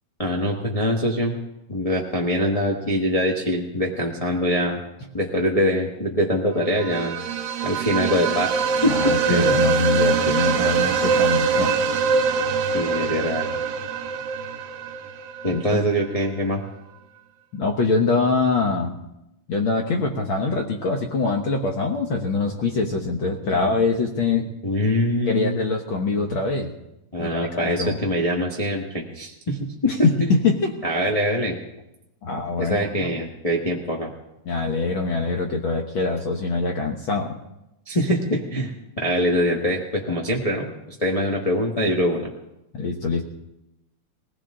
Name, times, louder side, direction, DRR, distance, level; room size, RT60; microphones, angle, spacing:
voice 1, 0.2-1.4 1.7-4.8 5.1-7.2 7.6-8.5 8.8-9.6 12.7-13.5 15.4-16.6 24.6-25.6 27.1-30.3 30.8-31.6 32.6-34.1 37.9-40.7 41.0-42.3, equal, 25° left, -2 dB, 0.7 m, -23 dB
sound 1, 6.8-15.6, right 5 dB, 70° right, 2.2 m, -23 dB
voice 2, 8.9-11.8 15.5-15.8 17.5-18.9 19.5-24.5 25.3-26.7 27.2-28.0 29.8-30.7 32.2-33.1 34.5-37.4 42.7-43.2, left 3 dB, 55° left, 2 dB, 1.5 m, -24 dB
22.0 x 16.5 x 3.8 m, 0.89 s
omnidirectional pair, 3.3 m